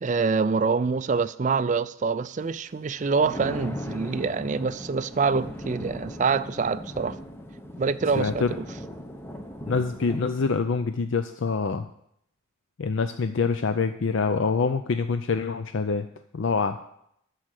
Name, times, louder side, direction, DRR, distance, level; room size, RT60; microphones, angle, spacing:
voice 1, 0.0-7.2 7.8-8.7, right 4 dB, 35° right, 0.3 m, -25 dB
Thunder, 2.9-10.6, left 1 dB, 10° left, 0.7 m, -38 dB
voice 2, 8.2-8.5 9.7-11.9 12.8-16.1 16.3-16.8, left 4 dB, 60° left, 0.5 m, -25 dB
13.0 x 4.9 x 7.6 m
head